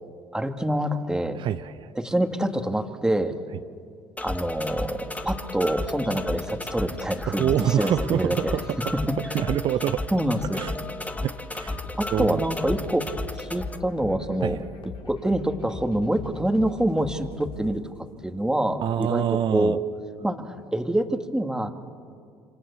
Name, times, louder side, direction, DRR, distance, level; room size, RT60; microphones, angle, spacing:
voice 1, 0.3-1.4 2.0-3.4 4.2-7.5 7.8-8.5 8.9-9.2 10.1-10.6 12.0-14.6 15.0-17.9 18.2-19.2 19.5-19.8 20.2-21.7, right 1 dB, 5° right, 6 dB, 2.2 m, -26 dB
voice 2, 1.3-1.9 7.3-8.9 9.3-10.0 10.5-10.7 11.2-11.8 12.1-12.4 14.4-14.6 18.8-19.8, right 10 dB, 55° right, 11 dB, 0.7 m, -26 dB
sound 1, 4.2-13.8, left 2 dB, 15° left, 1.6 m, -33 dB
sound 2, 8.4-18.1, left 4 dB, 55° left, 3.6 m, -42 dB
28.0 x 26.0 x 7.1 m, 2.4 s
supercardioid pair, 75°, 10 cm